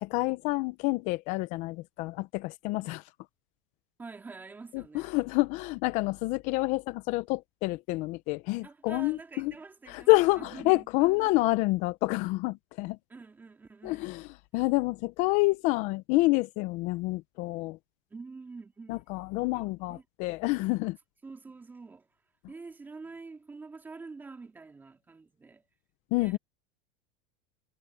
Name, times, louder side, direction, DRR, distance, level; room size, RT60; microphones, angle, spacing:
voice 1, 0.0-3.0 4.7-9.5 9.9-13.0 13.8-14.3 14.5-17.8 18.9-21.0 26.1-26.4, left 22 dB, 45° left, 0.6 m, -28 dB
voice 2, 4.0-5.1 8.6-11.3 13.1-14.1 14.5-14.7 18.1-19.0 19.5-20.0 21.2-22.1 22.5-25.6 26.1-26.4, right 4 dB, 10° right, 2.5 m, -46 dB
supercardioid pair, 155°, 17 cm